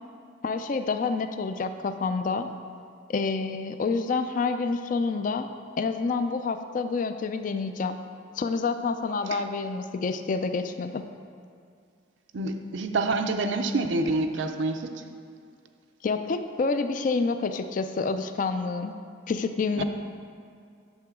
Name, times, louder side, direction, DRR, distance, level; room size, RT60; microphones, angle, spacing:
voice 1, 0.4-2.5 3.1-5.5 5.8-8.0 8.4-11.0 16.0-18.9 19.3-19.8, left 4 dB, 45° left, 8 dB, 0.3 m, -28 dB
voice 2, 12.3-14.9 19.8-19.9, right 2 dB, 70° right, 6 dB, 0.5 m, -27 dB
8.8 x 6.7 x 3.6 m, 2.3 s
head